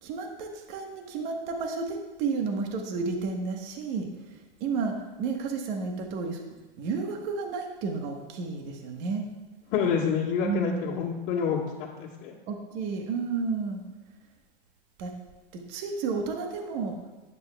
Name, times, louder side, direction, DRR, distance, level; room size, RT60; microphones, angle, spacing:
voice 1, 0.0-4.1 4.6-6.4 6.8-9.3 10.4-10.9 12.5-13.8 15.0-15.1 15.7-16.9, right 4 dB, 50° right, 3 dB, 1.3 m, -31 dB
voice 2, 9.7-12.3, left 7 dB, 45° left, -6 dB, 1.5 m, -28 dB
11.5 x 9.6 x 2.3 m, 1.1 s
hypercardioid pair, 120°, 29 cm